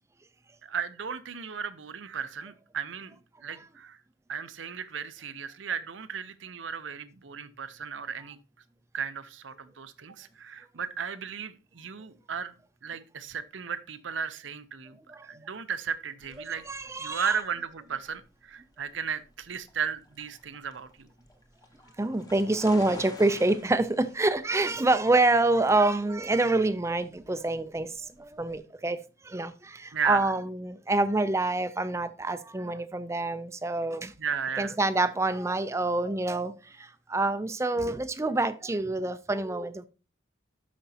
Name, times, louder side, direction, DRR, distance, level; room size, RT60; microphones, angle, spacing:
voice 1, 0.6-3.2 3.4-4.0 4.3-8.4 8.9-12.5 12.8-15.0 15.2-16.7 17.0-21.1 29.9-30.3 34.2-34.8, right 6 dB, 85° right, 0.7 m, -35 dB
sound 1, 16.2-28.6, left 1 dB, 20° left, 0.9 m, -50 dB
voice 2, 16.4-17.3 22.0-29.0 29.2-34.1 34.6-39.9, right 2 dB, 15° right, 0.4 m, -27 dB
12.5 x 5.1 x 2.8 m
head